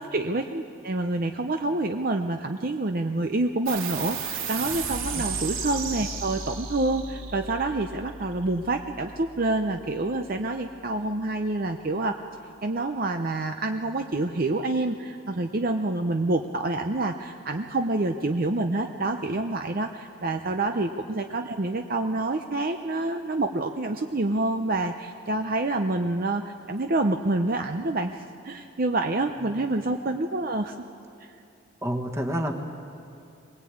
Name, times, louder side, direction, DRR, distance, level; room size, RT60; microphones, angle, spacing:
voice 1, 0.0-12.2 12.6-30.8, right 2 dB, 45° right, 5 dB, 0.6 m, -27 dB
sound 1, 3.7-10.6, right 5 dB, 75° right, 3.4 m, -35 dB
voice 2, 31.8-32.5, equal, 15° right, 3 dB, 1.5 m, -29 dB
22.5 x 19.0 x 8.6 m, 2.6 s
head